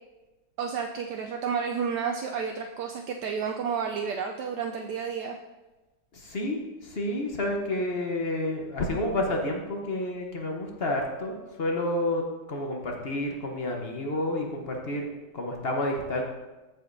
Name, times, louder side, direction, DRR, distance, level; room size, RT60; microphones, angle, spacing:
voice 1, 0.6-5.4, right 6 dB, 75° right, 2 dB, 1.1 m, -31 dB
voice 2, 6.1-15.1 15.3-16.2, left 1 dB, 45° left, 1 dB, 0.9 m, -30 dB
14.5 x 4.9 x 2.6 m, 1.1 s
omnidirectional pair, 2.0 m